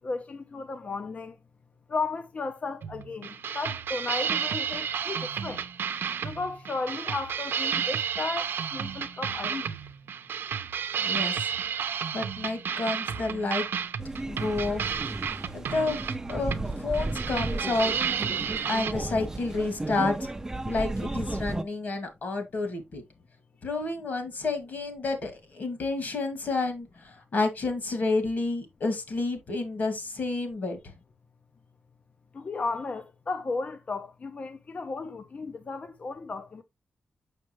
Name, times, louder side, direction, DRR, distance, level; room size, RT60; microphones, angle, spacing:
voice 1, 0.0-1.4 1.9-5.6 6.2-9.8 32.3-36.6, left 3 dB, 40° left, 0.6 m, -34 dB
sound 1, 2.8-18.9, right 7 dB, 85° right, 0.7 m, -32 dB
voice 2, 11.0-11.4 12.1-13.7 14.3-14.9 15.5-16.0 16.3-17.9 18.3-18.4 18.7-20.3 20.6-23.0 23.6-30.9, left 3 dB, 55° left, 2.3 m, -30 dB
sound 2, 14.0-21.6, right 2 dB, 15° right, 0.5 m, -34 dB
6.6 x 6.4 x 3.1 m
wide cardioid pair, 155°, 4 cm